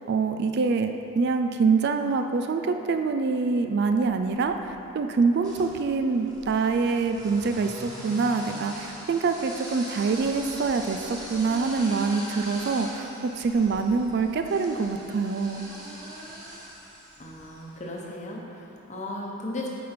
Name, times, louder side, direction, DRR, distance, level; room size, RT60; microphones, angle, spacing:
voice 1, 0.1-15.7, right 4 dB, 50° right, 7 dB, 0.3 m, -25 dB
sound 1, 4.1-4.7 5.4-17.7, right 1 dB, 20° right, 1.6 m, -41 dB
voice 2, 17.2-19.7, left 1 dB, 35° left, -2 dB, 0.9 m, -36 dB
8.8 x 5.1 x 4.3 m, 2.9 s
head